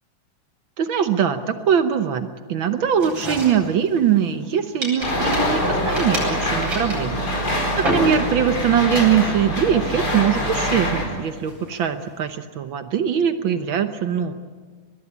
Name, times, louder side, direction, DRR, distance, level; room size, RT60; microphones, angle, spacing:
voice 1, 0.8-7.6 7.9-14.3, right 8 dB, 80° right, 8 dB, 1.1 m, -22 dB
sound 1, 3.0-4.5 4.8-8.6 9.0-9.3 9.8-12.1, right 1 dB, 35° right, 8.9 m, -31 dB
sound 2, 5.0-11.0, equal, 30° left, 5.1 m, -24 dB
23.5 x 21.0 x 8.4 m, 1.5 s
omnidirectional pair, 3.6 m